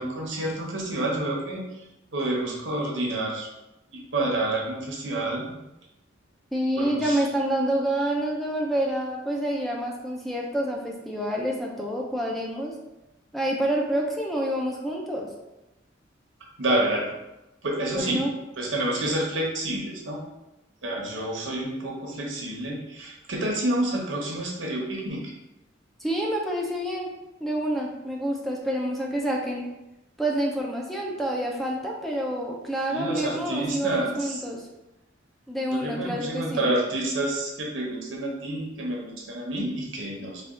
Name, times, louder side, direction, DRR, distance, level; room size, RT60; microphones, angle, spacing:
voice 1, 0.0-1.6 2.1-3.5 3.9-5.6 6.8-7.2 16.6-17.1 17.6-18.2 18.6-20.2 20.8-25.2 32.9-34.4 35.7-40.4, right 1 dB, 85° right, -1 dB, 0.9 m, -28 dB
voice 2, 6.5-12.8 13.3-15.3 17.9-18.3 26.0-27.1 27.4-29.7 30.2-34.7 35.5-36.7, right 1 dB, ahead, -1 dB, 0.4 m, -28 dB
3.4 x 2.3 x 3.7 m, 0.95 s
head